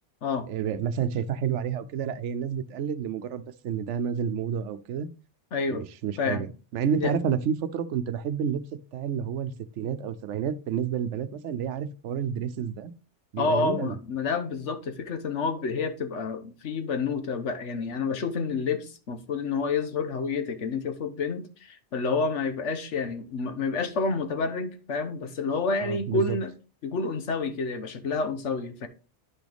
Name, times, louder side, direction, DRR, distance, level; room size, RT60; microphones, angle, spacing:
voice 1, 0.5-5.1 5.7-8.6 8.9-12.9 13.3-14.0 25.8-26.4, right 7 dB, 85° right, 0.9 m, -30 dB
voice 2, 5.5-5.8 6.2-6.5 7.0-7.1 13.4-26.5 26.8-28.9, left 4 dB, 75° left, 1.3 m, -29 dB
9.6 x 6.1 x 3.4 m
omnidirectional pair, 1.2 m